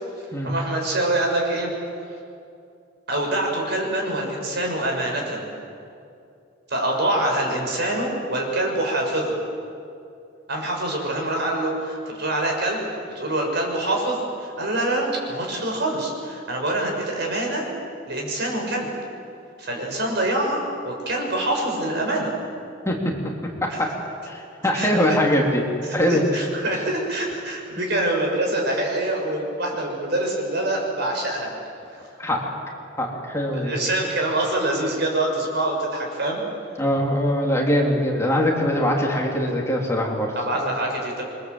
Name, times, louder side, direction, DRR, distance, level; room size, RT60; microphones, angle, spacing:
voice 1, 0.4-1.7 3.1-5.5 6.7-9.4 10.5-12.8 13.1-17.7 18.1-18.9 19.6-22.3 23.7-23.9 24.7-25.1 26.1-31.5 31.9-32.0 33.6-36.4 40.3-41.2, right 1 dB, 60° right, 1 dB, 6.4 m, -25 dB
voice 2, 22.8-23.3 23.6-23.9 24.3-25.6 25.9-26.2 32.2-32.4 33.0-33.7 36.8-40.3, equal, 15° left, -1 dB, 3.4 m, -22 dB
28.0 x 23.5 x 8.1 m, 2.5 s
head